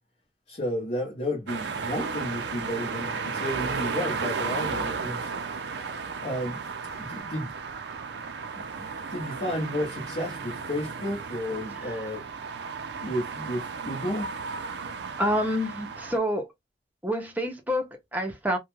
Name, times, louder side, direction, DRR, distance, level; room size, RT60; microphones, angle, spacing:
voice 1, 0.5-5.3 6.2-6.6 6.9-7.5 8.5-12.3 12.9-14.3, equal, 40° left, 0.7 m, -32 dB
sound 1, 1.5-16.2, right 5 dB, 70° right, 0.4 m, -34 dB
voice 2, 15.2-16.5 17.0-18.6, equal, 10° right, 0.6 m, -28 dB
2.3 x 2.1 x 2.9 m
head